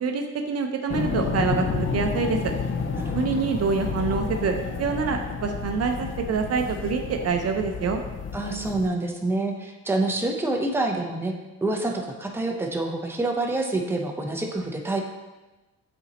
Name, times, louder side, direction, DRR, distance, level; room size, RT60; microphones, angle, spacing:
voice 1, 0.0-2.4 3.1-8.0, right 5 dB, 55° right, 4 dB, 0.6 m, -26 dB
sound 1, 0.9-8.9, left 5 dB, 40° left, 0.6 m, -30 dB
voice 2, 3.0-3.5 8.3-11.3 11.6-15.0, right 2 dB, 10° right, 1 dB, 0.8 m, -27 dB
7.8 x 4.2 x 2.9 m, 1.1 s
cardioid pair, 90°, 30 cm